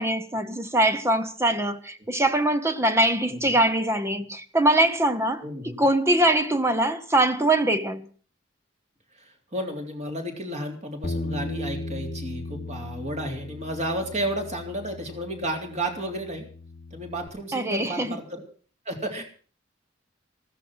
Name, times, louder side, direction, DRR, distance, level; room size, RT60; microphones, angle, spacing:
voice 1, 0.0-8.1 17.5-18.2, right 1 dB, 15° right, 0.8 m, -23 dB
voice 2, 5.4-5.8 9.2-16.5 16.9-18.4 18.9-19.2, right 1 dB, 35° right, 3.6 m, -32 dB
Bass guitar, 11.0-17.3, left 2 dB, 45° left, 0.9 m, -36 dB
15.0 x 14.0 x 6.1 m
head